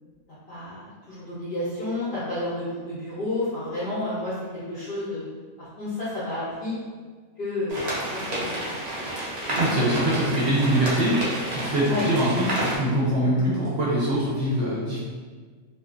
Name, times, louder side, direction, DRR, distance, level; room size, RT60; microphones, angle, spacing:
voice 1, 0.5-5.2 5.6-6.7 7.4-8.8 11.9-12.0, left 2 dB, 60° left, -10 dB, 0.5 m, -31 dB
sound 1, 7.7-12.8, right 1 dB, 85° right, 0.3 m, -30 dB
voice 2, 9.6-11.2 11.5-15.0, right 1 dB, 60° right, -7 dB, 0.7 m, -23 dB
2.5 x 2.2 x 2.4 m, 1.5 s
omnidirectional pair, 1.5 m